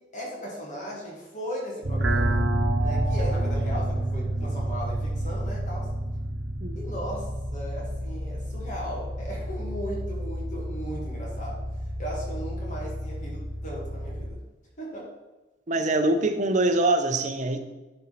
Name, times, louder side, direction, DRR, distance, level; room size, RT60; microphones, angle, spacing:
voice 1, 0.1-2.5 2.8-5.9 6.8-11.6 12.0-14.4 14.8-15.1, equal, 40° left, -3 dB, 2.1 m, -37 dB
sound 1, 1.8-14.3, right 1 dB, 85° right, 1.0 m, -29 dB
voice 2, 15.7-17.6, right 2 dB, 40° right, 7 dB, 0.8 m, -24 dB
11.5 x 4.4 x 4.2 m, 1.1 s
head